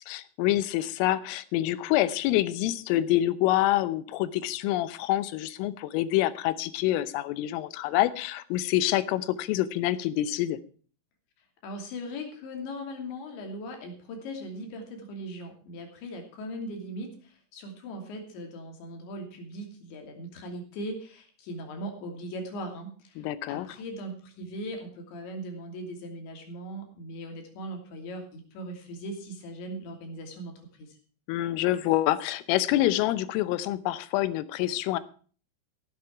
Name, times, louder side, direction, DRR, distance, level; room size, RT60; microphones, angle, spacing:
voice 1, 0.1-10.6 23.2-23.7 31.3-35.0, left 14 dB, 85° left, 15 dB, 3.4 m, -26 dB
voice 2, 11.6-30.9, equal, 65° left, 3 dB, 5.0 m, -39 dB
16.0 x 9.8 x 4.6 m, 0.42 s
omnidirectional pair, 5.8 m